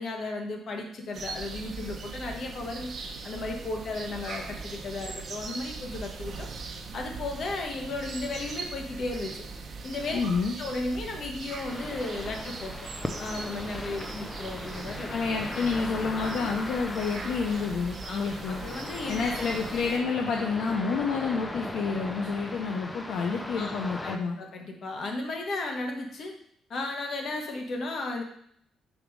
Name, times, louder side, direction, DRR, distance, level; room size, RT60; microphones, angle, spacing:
voice 1, 0.0-6.5 6.9-9.4 9.8-10.2 10.6-12.7 13.2-15.1 16.2-16.3 18.0-19.5 23.5-23.8 24.0-26.3 26.7-28.2, left 2 dB, 55° left, 2 dB, 1.4 m, -35 dB
sound 1, 1.1-20.0, right 4 dB, 50° right, 0.9 m, -40 dB
voice 2, 10.1-10.6 15.1-18.6 19.1-24.4, left 5 dB, 80° left, 2 dB, 0.6 m, -29 dB
sound 2, 11.7-24.2, left 2 dB, 15° left, 0.7 m, -38 dB
5.5 x 4.8 x 4.7 m, 0.67 s
cardioid pair, 90°, 0 cm